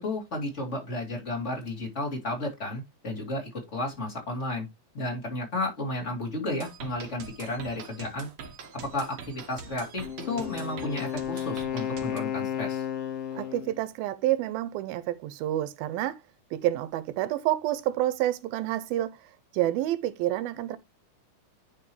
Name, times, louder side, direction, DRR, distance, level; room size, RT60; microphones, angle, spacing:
voice 1, 0.0-4.7 4.9-8.3 8.8-12.8, left 2 dB, 20° left, 2.2 m, -33 dB
sound 1, 6.6-12.2, right 6 dB, 65° right, 1.4 m, -44 dB
Wind instrument woodwind instrument, 10.0-13.8, left 9 dB, 60° left, 1.7 m, -33 dB
voice 2, 13.4-16.2 16.5-19.2 19.5-20.8, right 14 dB, 85° right, 2.4 m, -28 dB
9.9 x 5.3 x 3.1 m
omnidirectional pair, 4.3 m